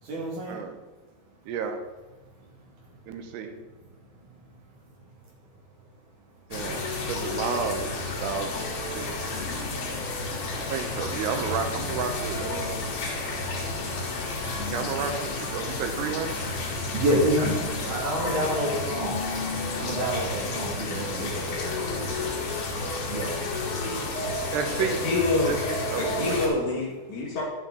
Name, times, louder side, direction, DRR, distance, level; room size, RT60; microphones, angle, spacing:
voice 1, 0.0-0.6 4.1-4.2 15.0-15.1 16.9-17.6 17.9-19.2 19.8-24.5 25.9-26.2, right 1 dB, 50° right, -3 dB, 3.8 m, -30 dB
voice 2, 1.5-1.8 3.1-3.6 6.5-7.9 8.2-8.7 8.9-9.1 10.7-13.0 14.7-16.4 24.5-25.0 25.5-26.5, right 6 dB, 85° right, 6 dB, 3.1 m, -31 dB
sound 1, 6.5-26.5, left 3 dB, 70° left, 4.1 m, -31 dB
voice 3, 24.8-25.6 26.0-27.4, left 3 dB, 55° left, -2 dB, 2.9 m, -27 dB
11.0 x 9.4 x 4.0 m, 1.2 s
omnidirectional pair, 4.7 m